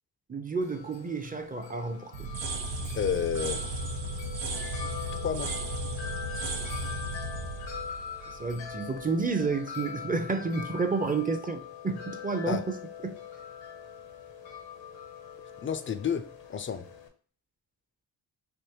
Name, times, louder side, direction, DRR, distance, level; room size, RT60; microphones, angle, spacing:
voice 1, 0.3-2.1 8.3-12.8 13.0-13.1, right 4 dB, 20° right, 0.5 m, -30 dB
Wind chime, 0.6-17.1, left 8 dB, 80° left, 0.8 m, -42 dB
sound 1, 2.1-9.0, right 2 dB, 90° right, 0.7 m, -35 dB
voice 2, 2.9-3.6 5.1-5.5 12.5-12.6 15.6-16.9, left 7 dB, 30° left, 0.4 m, -31 dB
3.5 x 2.6 x 2.9 m
supercardioid pair, 55°, 44 cm